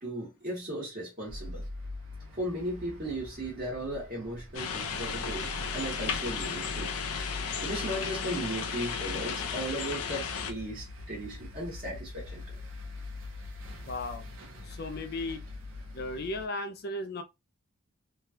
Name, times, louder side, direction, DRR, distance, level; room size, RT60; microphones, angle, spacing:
voice 1, 0.0-1.6 2.4-6.9 7.6-12.5, right 1 dB, 40° right, 1.3 m, -36 dB
sound 1, 1.3-16.5, left 2 dB, 65° right, 0.8 m, -43 dB
sound 2, 4.5-10.5, left 6 dB, 90° left, 0.6 m, -34 dB
voice 2, 13.8-14.3 14.6-15.4 15.9-17.2, left 2 dB, 45° left, 0.4 m, -36 dB
3.2 x 2.3 x 2.7 m
head